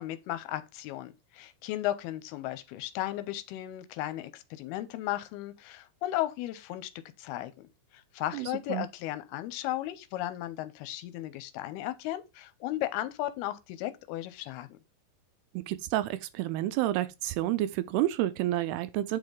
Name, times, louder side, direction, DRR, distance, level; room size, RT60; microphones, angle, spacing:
voice 1, 0.0-6.9 7.2-7.7 7.9-14.8, left 14 dB, 85° left, 2.5 m, -35 dB
voice 2, 8.3-8.9 15.5-19.2, right 14 dB, 80° right, 2.5 m, -30 dB
7.4 x 5.4 x 3.8 m
omnidirectional pair, 4.7 m